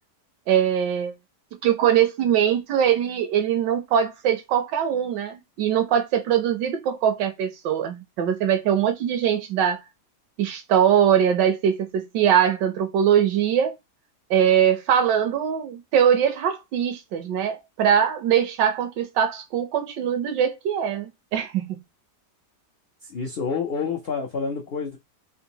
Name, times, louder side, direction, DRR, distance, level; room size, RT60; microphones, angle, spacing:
voice 1, 0.5-1.1 1.6-9.8 10.4-13.7 14.3-21.8, right 9 dB, 85° right, 1.4 m, -22 dB
voice 2, 23.0-25.0, left 5 dB, 85° left, 0.5 m, -28 dB
3.6 x 2.6 x 2.9 m
omnidirectional pair, 1.9 m